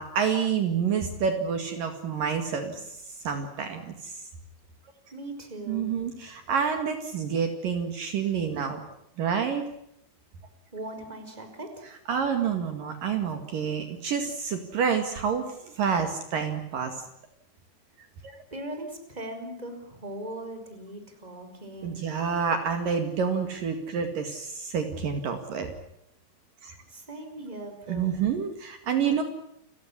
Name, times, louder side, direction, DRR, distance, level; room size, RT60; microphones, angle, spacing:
voice 1, 0.0-3.0 3.3-4.1 5.7-8.8 9.2-9.6 12.1-16.9 18.2-18.3 21.8-25.7 26.6-26.8 27.9-29.2, right 6 dB, 60° right, 7 dB, 3.6 m, -28 dB
voice 2, 5.1-5.9 6.2-6.3 10.7-11.9 18.5-22.0 26.9-28.1, right 1 dB, 10° right, 6 dB, 4.7 m, -39 dB
30.0 x 16.5 x 10.0 m, 0.76 s
omnidirectional pair, 4.6 m